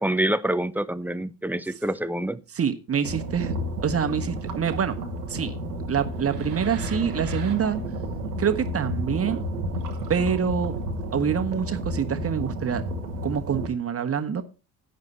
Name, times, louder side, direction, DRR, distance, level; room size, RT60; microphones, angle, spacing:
voice 1, 0.0-2.4, right 1 dB, 5° right, 16 dB, 0.6 m, -26 dB
voice 2, 2.5-3.5 3.8-5.0 5.3-7.8 8.4-9.4 10.1-10.8 11.1-12.8 13.2-14.4, right 7 dB, 30° right, 9 dB, 1.4 m, -26 dB
sound 1, 3.0-13.7, right 1 dB, 85° right, 1.2 m, -31 dB
11.0 x 9.0 x 4.3 m, 0.32 s
figure-of-eight pair, 50°, 46 cm